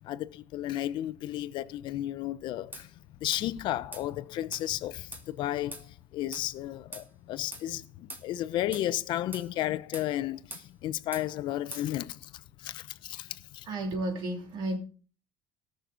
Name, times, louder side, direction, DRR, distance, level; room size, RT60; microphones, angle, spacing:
voice 1, 0.0-13.7, left 13 dB, 60° left, 0.7 m, -33 dB
sound 1, 2.7-2.9 3.3-3.5 3.9-4.1 4.5-4.7 5.1-5.3 5.7-5.9 6.3-6.5 6.9-7.1 7.5-7.7 8.1-8.3 8.7-8.9 9.3-9.5 9.9-10.1 10.5-10.7 11.1-11.3 11.7-11.9, right 2 dB, 20° right, 1.9 m, -42 dB
voice 2, 13.7-14.8, right 1 dB, 60° right, 3.0 m, -32 dB
18.0 x 6.7 x 3.9 m
cardioid pair, 140°, 9 cm